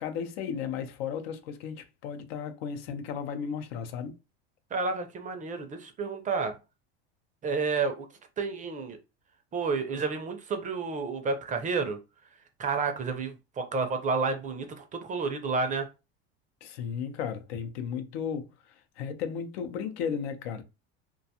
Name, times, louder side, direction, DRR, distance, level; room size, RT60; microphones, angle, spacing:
voice 1, 0.0-4.2 16.6-20.6, left 7 dB, 85° left, 0.6 m, -35 dB
voice 2, 4.7-6.6 7.4-8.1 8.4-9.0 9.5-12.0 12.6-15.9, right 4 dB, 25° right, 0.5 m, -30 dB
2.4 x 2.3 x 2.7 m
supercardioid pair, 115°, 30 cm